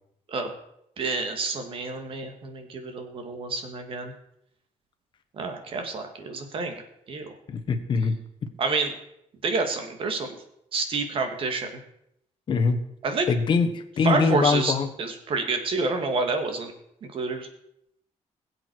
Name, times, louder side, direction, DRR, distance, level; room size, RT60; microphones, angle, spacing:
voice 1, 1.0-4.1 5.4-6.7 7.1-7.3 8.6-8.9 9.4-10.4 10.7-11.7 13.0-13.3 14.0-16.7 17.1-17.5, right 3 dB, 45° right, 6 dB, 2.1 m, -28 dB
voice 2, 7.5-8.1 12.5-12.8 13.3-14.9, left 4 dB, 40° left, 7 dB, 1.4 m, -23 dB
21.5 x 8.0 x 4.7 m, 0.77 s
cardioid pair, 170°, 13 cm